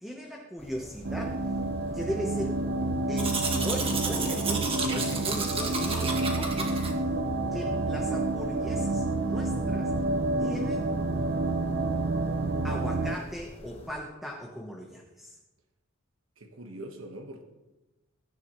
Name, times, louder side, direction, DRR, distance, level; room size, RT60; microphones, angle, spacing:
voice 1, 0.0-1.5 1.9-2.6 3.1-6.8 7.5-9.9 10.4-10.9 12.6-15.4, equal, ahead, 0 dB, 1.0 m, -38 dB
sound 1, 0.6-13.9, left 1 dB, 25° left, 1.3 m, -46 dB
sound 2, 1.0-13.2, right 2 dB, 50° right, 0.7 m, -29 dB
Domestic sounds home sounds, 3.2-6.9, right 4 dB, 25° right, 1.7 m, -32 dB
voice 2, 16.4-17.4, right 1 dB, 70° right, 4 dB, 1.4 m, -42 dB
21.5 x 10.5 x 3.1 m, 1.1 s
head